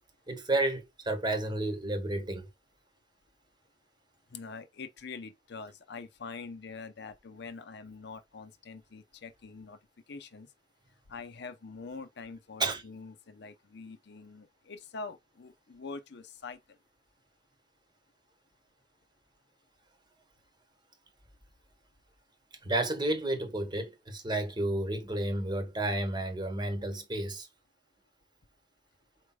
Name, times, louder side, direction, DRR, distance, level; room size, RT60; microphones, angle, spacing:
voice 1, 0.3-2.5 12.6-12.8 22.6-27.5, right 2 dB, 25° right, 1.1 m, -31 dB
voice 2, 4.3-9.8 10.1-10.5 11.1-16.8, left 4 dB, 65° left, 0.6 m, -44 dB
4.7 x 4.3 x 2.3 m
head